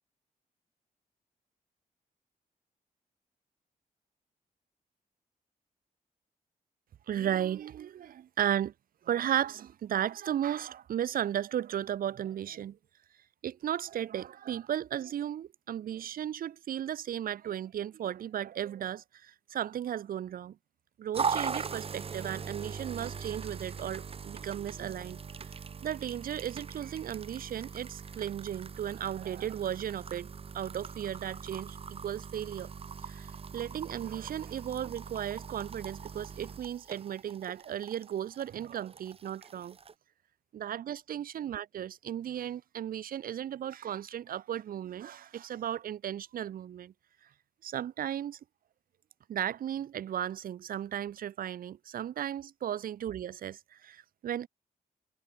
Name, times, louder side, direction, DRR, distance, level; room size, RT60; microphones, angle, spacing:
voice 1, 7.1-8.7 9.0-12.8 13.4-20.5 21.0-25.2 25.8-32.7 33.0-33.3 33.5-39.8 40.5-46.9 47.6-48.4 49.3-54.5, right 10 dB, 75° right, 0.9 m, -35 dB
sound 1, 21.1-39.9, right 6 dB, 40° right, 1.1 m, -41 dB
cardioid pair, 105°, 15 cm